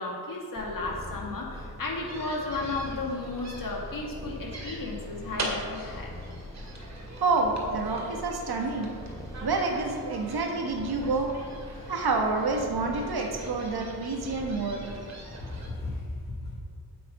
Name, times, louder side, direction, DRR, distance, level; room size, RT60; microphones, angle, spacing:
voice 1, 0.0-6.1 7.7-7.8 15.4-16.6, left 3 dB, 50° left, -1 dB, 2.1 m, -34 dB
Purr, 0.6-16.0, left 1 dB, 10° left, 1.0 m, -43 dB
sound 1, 2.1-15.7, right 1 dB, 40° right, 2.2 m, -42 dB
voice 2, 7.2-8.9 9.4-11.3 11.9-14.9, right 3 dB, 60° right, 2 dB, 1.6 m, -28 dB
8.0 x 7.7 x 5.3 m, 2.2 s
cardioid pair, 75°, 42 cm